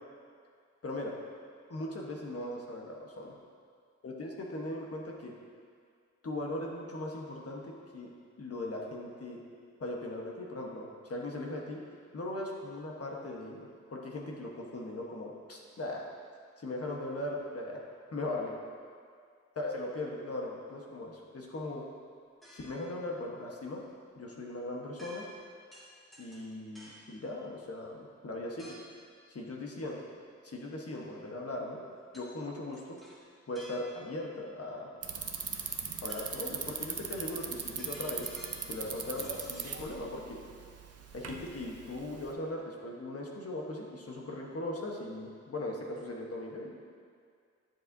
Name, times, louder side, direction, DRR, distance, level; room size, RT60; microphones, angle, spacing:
voice 1, 0.8-1.2 1.7-3.3 4.0-5.3 6.2-8.1 8.4-9.4 9.8-11.8 12.1-16.0 16.6-17.8 18.1-18.6 19.6-21.8 22.5-23.8 24.2-25.2 26.2-28.8 29.3-30.0 30.4-31.8 32.1-33.0 33.5-34.9 36.0-38.3 38.7-40.4 41.1-46.8, left 1 dB, 55° left, -1 dB, 1.2 m, -39 dB
sound 1, 22.4-22.9 25.0-25.4 25.7-27.1 28.6-29.0 32.1-32.3 32.7-34.2 35.5-35.6 35.9-39.8, equal, ahead, 1.8 m, -53 dB
Bicycle, 35.0-42.3, right 6 dB, 55° right, 0.7 m, -40 dB
11.0 x 7.3 x 2.7 m, 2.1 s
wide cardioid pair, 110°, 29 cm